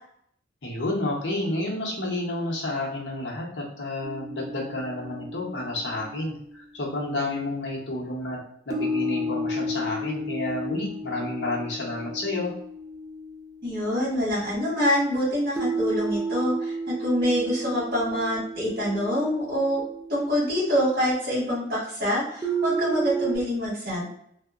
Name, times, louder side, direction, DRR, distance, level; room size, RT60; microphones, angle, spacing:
voice 1, 0.6-8.4 8.7-12.5, left 1 dB, 65° left, -3 dB, 0.8 m, -30 dB
sound 1, 4.0-7.3 8.7-14.2 15.6-21.0 22.4-23.4, right 1 dB, 20° right, 0.3 m, -32 dB
voice 2, 13.6-19.8 20.1-24.0, equal, 50° right, -7 dB, 1.4 m, -25 dB
2.8 x 2.1 x 2.3 m, 0.70 s
head